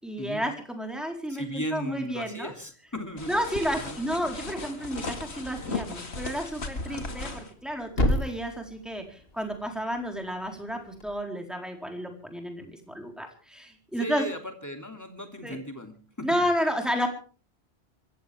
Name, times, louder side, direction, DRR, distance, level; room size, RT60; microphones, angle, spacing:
voice 1, 0.0-2.5 3.3-14.3 15.4-15.6 16.2-17.1, equal, ahead, 2 dB, 4.3 m, -31 dB
voice 2, 1.3-4.0 6.8-7.2 14.0-16.3, equal, 15° left, 4 dB, 3.0 m, -37 dB
sound 1, 3.2-7.5, left 3 dB, 80° left, 2.4 m, -36 dB
Thump thud, 7.1-11.2, left 1 dB, 65° left, 2.7 m, -33 dB
26.5 x 14.5 x 3.6 m, 0.40 s
omnidirectional pair, 1.1 m